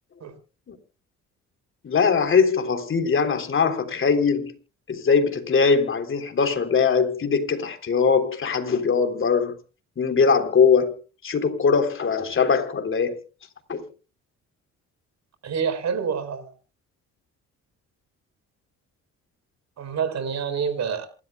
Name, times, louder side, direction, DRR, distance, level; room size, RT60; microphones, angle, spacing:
voice 1, 1.8-4.5 4.9-9.5 10.0-11.0 11.2-13.2 13.7-13.9, left 5 dB, 45° left, 3.4 m, -21 dB
voice 2, 15.4-16.5 19.8-21.1, right 6 dB, 60° right, 4.8 m, -27 dB
28.0 x 13.0 x 2.3 m
cardioid pair, 90°, 30 cm